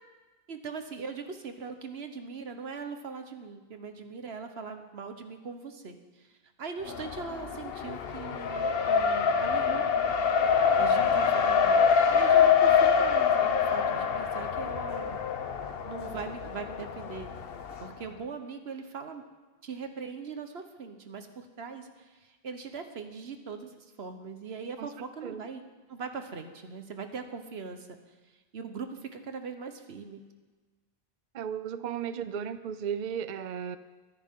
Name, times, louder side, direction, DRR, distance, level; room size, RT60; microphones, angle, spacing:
voice 1, 0.5-6.3 6.6-10.1 10.8-11.8 12.1-15.2 15.8-17.3 17.8-19.2 19.6-23.7 24.0-25.6 25.9-28.0 28.5-30.2, right 5 dB, 80° right, 7 dB, 1.4 m, -40 dB
Race car auto racing, 6.9-17.9, left 6 dB, 70° left, 1.0 m, -25 dB
voice 2, 24.8-25.4 31.3-33.8, right 8 dB, 55° right, 12 dB, 0.6 m, -35 dB
23.0 x 10.0 x 3.8 m, 1.3 s
omnidirectional pair, 1.0 m